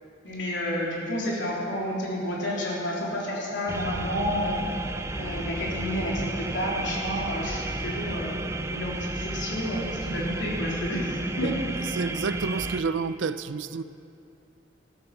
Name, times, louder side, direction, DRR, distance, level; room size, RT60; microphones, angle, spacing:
voice 1, 0.2-4.7 5.2-8.4 8.7-11.7, left 1 dB, 70° left, 3.6 m, -30 dB
sound 1, 3.7-12.8, right 2 dB, 15° right, 0.4 m, -32 dB
voice 2, 11.9-13.8, right 5 dB, 80° right, 0.5 m, -29 dB
14.5 x 13.5 x 6.0 m
head